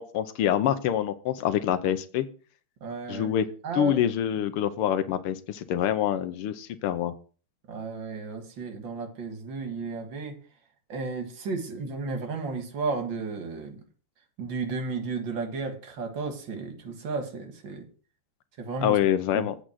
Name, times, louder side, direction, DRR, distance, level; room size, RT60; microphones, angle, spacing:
voice 1, 0.0-2.3 3.1-3.5 3.7-7.1 18.8-19.6, left 10 dB, 80° left, 11 dB, 1.7 m, -26 dB
voice 2, 2.8-3.4 3.6-4.0 7.7-10.4 10.9-13.8 14.4-17.9 18.6-19.0 19.3-19.5, right 4 dB, 60° right, 5 dB, 2.4 m, -33 dB
8.3 x 5.0 x 7.5 m, 0.39 s
omnidirectional pair, 2.4 m